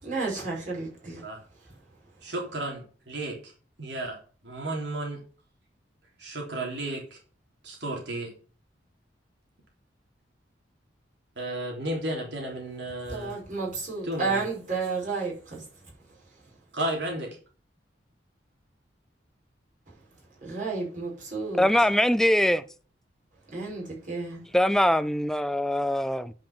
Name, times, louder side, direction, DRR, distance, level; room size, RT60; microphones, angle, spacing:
voice 1, 0.0-1.2 13.1-15.7 20.4-21.6 23.5-24.4, right 4 dB, 45° right, 5.9 m, -31 dB
voice 2, 2.2-3.5 3.8-4.2 4.4-5.2 6.2-7.2 7.6-8.3 11.4-13.3 14.0-14.4 16.7-17.4, right 1 dB, 65° right, 3.3 m, -33 dB
voice 3, 21.6-22.6 24.5-26.3, left 1 dB, 5° left, 0.5 m, -22 dB
10.5 x 5.5 x 7.2 m
head